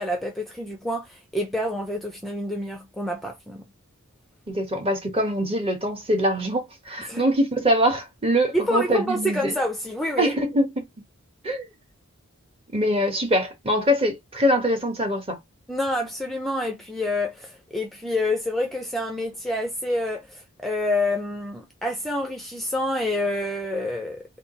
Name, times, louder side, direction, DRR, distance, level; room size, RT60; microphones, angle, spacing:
voice 1, 0.0-3.6 7.1-7.3 8.5-10.4 15.7-24.2, left 1 dB, ahead, 0.5 m, -27 dB
voice 2, 4.5-9.5 10.2-10.9 11.4-11.7 12.7-15.4, equal, 30° right, 1.1 m, -23 dB
3.6 x 2.3 x 3.9 m
head